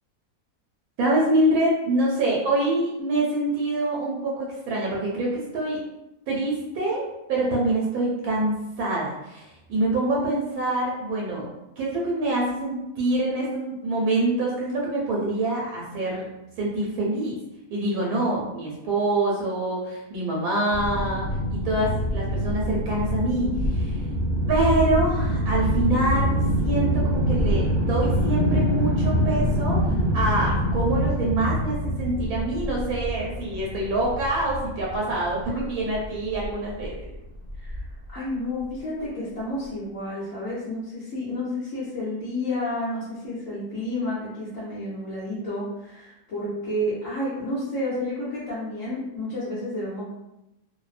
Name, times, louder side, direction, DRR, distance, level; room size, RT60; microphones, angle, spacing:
voice 1, 1.0-5.8 6.3-11.5 11.8-16.3 16.6-17.4 17.7-24.0 24.5-36.9, right 2 dB, 85° right, -4 dB, 1.1 m, -25 dB
sound 1, 20.7-38.1, equal, 50° right, 0.7 m, -25 dB
voice 2, 37.6-50.0, left 1 dB, 60° left, -9 dB, 1.0 m, -30 dB
2.6 x 2.0 x 2.4 m, 0.93 s
omnidirectional pair, 1.5 m